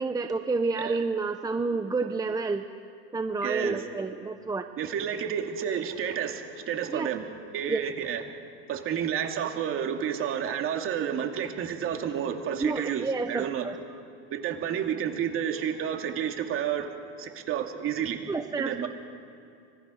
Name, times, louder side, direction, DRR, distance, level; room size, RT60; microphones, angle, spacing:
voice 1, 0.0-2.6 3.1-4.7 6.9-7.1 7.7-7.8 12.6-13.7 18.3-18.9, right 4 dB, 10° right, 8 dB, 0.8 m, -29 dB
voice 2, 3.4-3.8 4.8-7.2 7.5-8.2 8.7-13.7 14.3-16.9 17.2-18.2 18.6-18.9, right 8 dB, 40° right, 4 dB, 2.6 m, -30 dB
25.0 x 21.0 x 6.5 m, 2.5 s
supercardioid pair, 125°, 33 cm